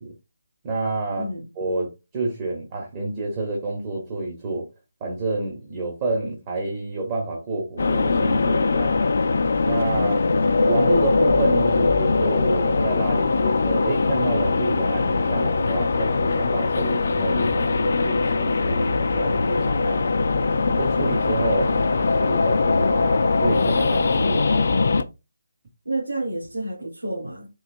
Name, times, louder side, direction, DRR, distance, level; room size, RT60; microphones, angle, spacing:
voice 1, 0.6-1.3 1.6-4.7 5.0-9.0 9.6-10.2 10.7-20.2 20.8-24.7, right 2 dB, 20° right, 0.8 m, -29 dB
sound 1, 7.8-25.0, left 3 dB, 50° left, 0.3 m, -21 dB
voice 2, 21.7-22.3 25.0-25.1 25.8-27.5, right 1 dB, 80° right, 1.6 m, -31 dB
3.8 x 2.7 x 2.5 m
figure-of-eight pair, 150°, 0 cm